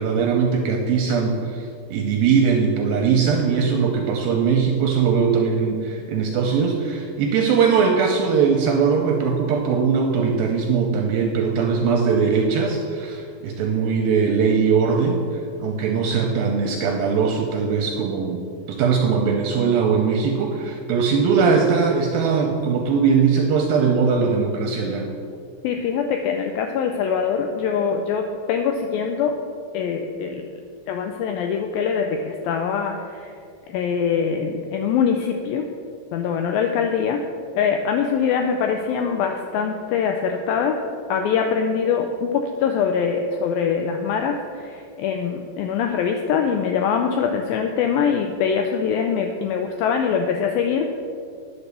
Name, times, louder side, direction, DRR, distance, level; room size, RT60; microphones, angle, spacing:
voice 1, 0.0-18.4 18.7-25.1, right 5 dB, 75° right, 2 dB, 2.2 m, -20 dB
voice 2, 25.6-29.4 29.7-30.5 30.9-33.3 33.7-35.7 36.1-37.2 37.6-40.8 41.1-50.9, left 6 dB, 85° left, 4 dB, 2.1 m, -23 dB
9.7 x 6.0 x 6.7 m, 2.3 s
omnidirectional pair, 4.7 m